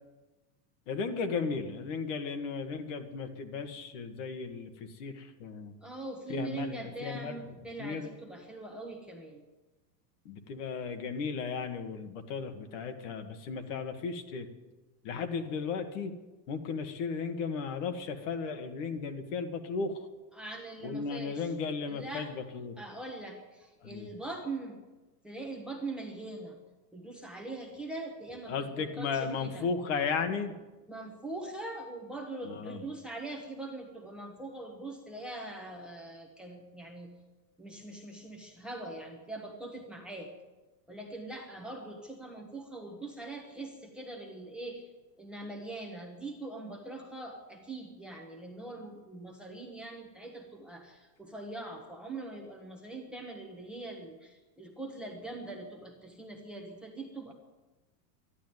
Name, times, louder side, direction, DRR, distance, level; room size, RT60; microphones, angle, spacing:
voice 1, 0.9-5.7 6.3-7.4 7.8-8.1 10.2-14.5 15.0-16.1 16.5-20.1 20.8-22.7 23.8-24.1 28.5-30.5 32.4-32.8, left 5 dB, 45° left, 7 dB, 1.7 m, -35 dB
voice 2, 5.8-9.4 20.3-21.5 21.9-22.3 22.8-24.8 25.2-26.6 26.9-29.7 30.9-37.1 37.6-40.3 40.9-44.9 45.2-57.3, right 2 dB, ahead, 1 dB, 1.3 m, -42 dB
12.5 x 12.0 x 9.6 m, 1.1 s
supercardioid pair, 170°, 50 cm